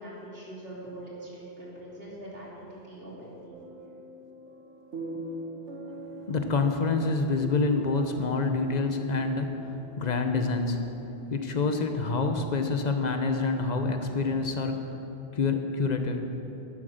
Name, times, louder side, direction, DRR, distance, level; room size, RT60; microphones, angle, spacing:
voice 1, 0.0-3.6, right 1 dB, 60° right, -6 dB, 3.0 m, -43 dB
sound 1, 3.5-10.6, right 1 dB, 90° right, 2.2 m, -43 dB
voice 2, 6.3-14.9 15.3-16.2, left 3 dB, 40° left, 6 dB, 0.9 m, -27 dB
11.0 x 8.9 x 6.5 m, 3.0 s
omnidirectional pair, 1.2 m